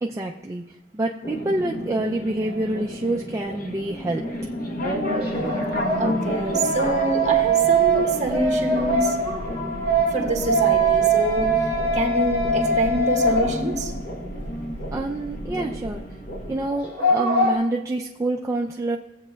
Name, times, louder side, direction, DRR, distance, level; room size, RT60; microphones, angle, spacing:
voice 1, 0.0-4.4 14.9-16.0 16.5-19.0, right 2 dB, 15° right, 0 dB, 0.3 m, -27 dB
sound 1, 1.2-16.7, equal, 50° left, 0.9 m, -33 dB
sound 2, 2.4-2.6 5.1-14.0 14.3-14.4 16.7-17.6, right 3 dB, 30° left, 2.2 m, -23 dB
sound 3, 3.7-4.0 4.3-5.0 5.3-6.0 6.3-16.5, equal, 70° left, 1.1 m, -35 dB
voice 2, 6.0-9.2 10.1-11.5 11.9-13.9, right 1 dB, 40° right, 1 dB, 1.3 m, -25 dB
16.5 x 8.0 x 2.2 m, 1.0 s
head